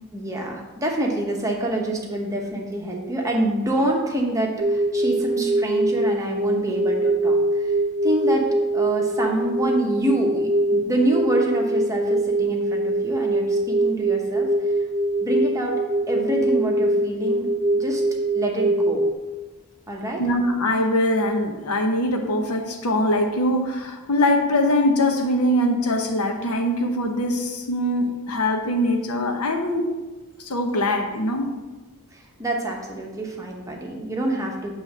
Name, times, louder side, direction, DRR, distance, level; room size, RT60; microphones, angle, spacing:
voice 1, 0.1-14.5 15.2-15.8 16.1-17.5 17.7-18.0 18.3-19.0 19.9-20.2 32.1-34.8, right 1 dB, 15° right, 0 dB, 1.0 m, -26 dB
sound 1, 4.6-19.1, right 1 dB, 40° right, 0.5 m, -23 dB
voice 2, 20.2-29.9 30.4-31.6, left 1 dB, 85° left, 4 dB, 0.9 m, -22 dB
7.7 x 3.2 x 6.0 m, 1.2 s
head